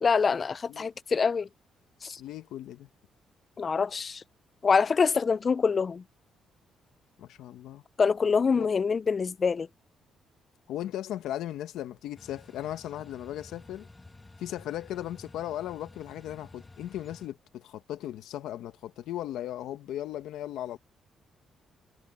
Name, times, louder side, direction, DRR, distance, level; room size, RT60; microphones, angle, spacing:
voice 1, 0.0-1.5 2.0-2.2 3.6-4.2 4.6-6.0 8.0-9.7, left 5 dB, 40° left, 0.3 m, -25 dB
voice 2, 2.2-2.9 7.2-7.8 8.5-8.7 10.7-13.9 14.4-20.8, left 12 dB, 85° left, 1.4 m, -37 dB
sound 1, 12.2-17.3, left 2 dB, 20° left, 1.3 m, -52 dB
cardioid pair, 90°, 0 cm